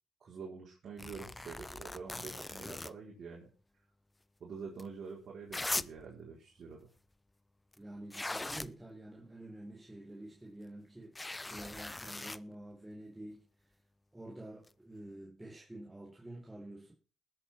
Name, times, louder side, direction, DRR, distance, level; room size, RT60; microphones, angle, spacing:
voice 1, 0.2-3.5 4.4-6.9, right 5 dB, 55° right, 4.2 m, -47 dB
sound 1, 1.0-2.9 4.8-4.9 5.5-6.0 7.7-7.8 8.1-8.7 11.1-12.4 14.7-14.8, left 2 dB, 15° left, 0.5 m, -40 dB
voice 2, 7.8-13.4 14.1-16.9, right 1 dB, 10° right, 3.8 m, -48 dB
20.5 x 7.6 x 4.4 m
cardioid pair, 100°, 0 cm